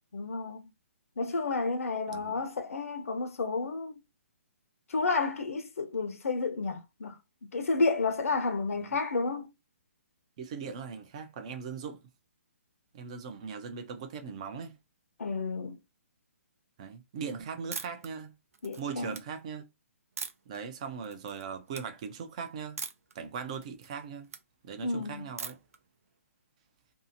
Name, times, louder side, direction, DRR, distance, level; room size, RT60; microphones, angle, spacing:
voice 1, 0.1-0.6 1.2-4.0 4.9-7.2 7.5-9.5 15.2-15.8 18.6-19.2 24.8-25.3, left 3 dB, 85° left, 0.7 m, -31 dB
voice 2, 10.4-12.0 12.9-14.8 16.8-18.3 18.8-19.6 20.5-22.8 23.2-24.3 24.6-25.6, right 6 dB, 25° right, 0.4 m, -39 dB
sound 1, 17.7-18.1 18.5-19.2 20.2-20.6 21.0-21.4 21.7-21.8 22.8-23.1 23.5-24.4 25.4-25.8, right 5 dB, 85° right, 0.6 m, -40 dB
2.7 x 2.4 x 2.6 m
hypercardioid pair, 165°, 8 cm